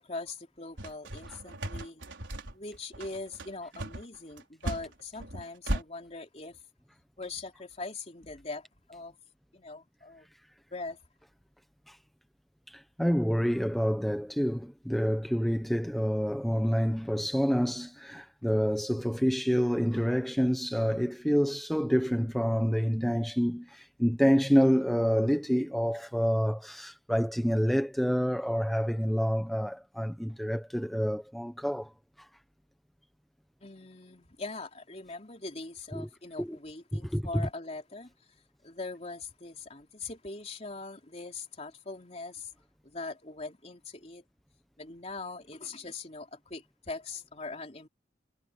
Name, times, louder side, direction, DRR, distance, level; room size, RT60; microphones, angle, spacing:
voice 1, 0.0-2.0 2.5-6.6 7.2-9.2 9.5-10.3 10.7-11.0 33.6-38.4 38.6-42.5 42.8-44.2 44.8-47.9, left 3 dB, 35° left, 3.4 m, -41 dB
sound 1, 0.8-5.8, right 1 dB, 90° right, 4.7 m, -36 dB
voice 2, 12.7-31.9 32.2-32.3 35.9-36.1 36.4-36.6 36.9-37.4, equal, ahead, 1.0 m, -28 dB
head